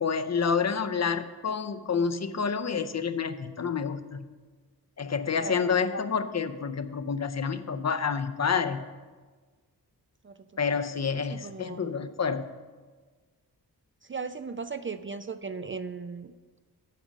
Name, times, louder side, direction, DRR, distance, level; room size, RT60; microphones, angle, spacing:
voice 1, 0.0-4.3 5.0-8.8 10.6-12.5, left 6 dB, 40° left, 10 dB, 0.6 m, -28 dB
voice 2, 11.3-11.9 14.0-16.3, right 5 dB, 30° right, 10 dB, 0.4 m, -37 dB
8.9 x 6.1 x 6.3 m, 1.4 s
cardioid pair, 65°, 40 cm